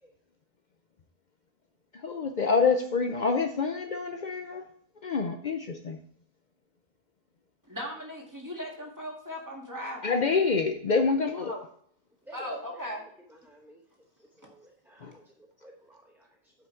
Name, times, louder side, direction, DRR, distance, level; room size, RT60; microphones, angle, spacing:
voice 1, 2.0-4.6 5.0-6.0 10.0-11.5 15.0-15.1, left 4 dB, 50° left, 5 dB, 0.7 m, -26 dB
voice 2, 7.7-10.1 11.3-11.6 12.3-13.0, equal, 20° right, -1 dB, 1.9 m, -38 dB
voice 3, 12.3-12.9 13.3-13.8 14.4-16.5, right 1 dB, ahead, 0 dB, 0.9 m, -53 dB
9.2 x 5.7 x 4.5 m, 0.63 s
omnidirectional pair, 1.0 m